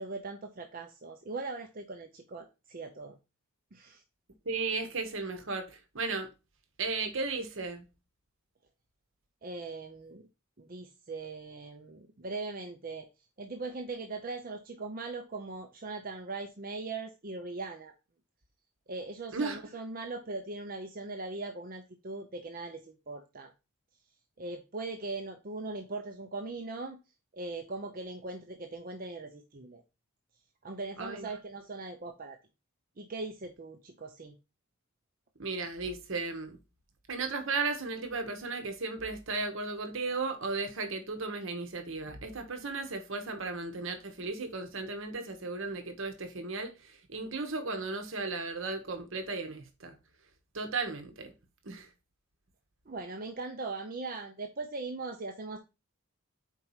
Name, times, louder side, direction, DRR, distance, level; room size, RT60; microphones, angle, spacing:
voice 1, 0.0-3.2 3.7-4.0 9.4-10.3 10.6-13.1 13.4-17.9 18.9-23.5 24.4-27.0 27.3-29.8 30.6-32.4 33.0-34.4 52.9-55.6, right 3 dB, 40° right, 0.7 m, -40 dB
voice 2, 4.5-6.3 6.8-7.9 19.3-19.6 31.0-31.3 35.4-36.6 37.1-49.9 50.5-51.3 51.6-51.9, right 3 dB, 60° right, 1.1 m, -35 dB
4.6 x 4.6 x 5.5 m
head